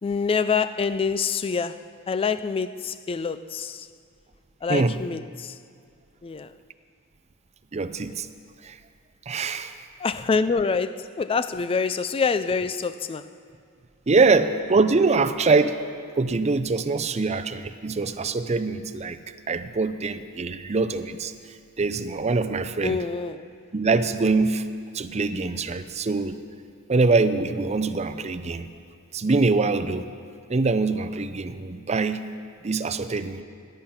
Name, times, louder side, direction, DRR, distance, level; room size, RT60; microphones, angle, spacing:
voice 1, 0.0-3.9 4.6-5.6 6.2-6.5 10.0-13.3 22.8-23.5, left 5 dB, 25° left, 0.3 m, -26 dB
voice 2, 7.7-8.3 8.6-8.8 9.3-9.8 14.1-15.8 16.2-19.2 19.5-21.3 21.8-23.0 23.7-24.6 24.9-26.4 26.9-28.7 29.1-30.1 30.5-32.2 32.6-33.4, right 3 dB, 30° right, 0.6 m, -23 dB
17.5 x 11.5 x 5.7 m
head